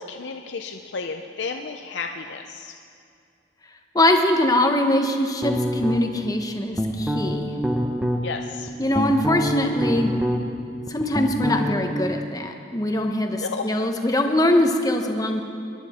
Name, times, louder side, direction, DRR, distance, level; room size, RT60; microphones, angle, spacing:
voice 1, 0.0-2.7 8.2-8.7 13.3-13.7, left 4 dB, 70° left, 4 dB, 0.6 m, -32 dB
voice 2, 3.9-7.5 8.8-10.2 10.9-15.4, left 1 dB, 20° left, 4 dB, 0.9 m, -22 dB
sound 1, 5.4-6.3 6.7-8.2 8.7-10.6 10.9-11.9, equal, 5° right, 0.7 m, -25 dB
21.5 x 11.0 x 4.3 m, 2.3 s
head